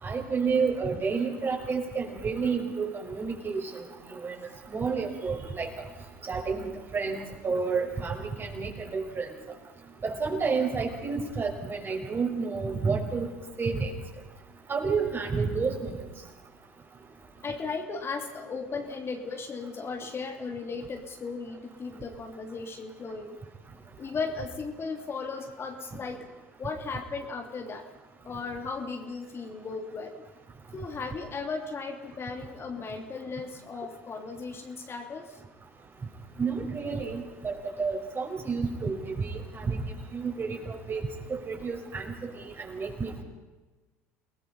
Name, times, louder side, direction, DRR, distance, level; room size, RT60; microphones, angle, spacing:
voice 1, 0.0-4.4 4.7-5.7 6.2-9.3 10.0-13.3 13.6-13.9 14.7-16.0 36.4-41.0 41.3-43.2, right 5 dB, 30° right, 2 dB, 5.8 m, -30 dB
voice 2, 17.4-23.4 24.0-26.2 26.6-27.9 28.2-30.2 30.7-35.4, left 4 dB, 30° left, 4 dB, 3.0 m, -36 dB
29.5 x 19.0 x 5.6 m, 1.2 s
hypercardioid pair, 70°, 8 cm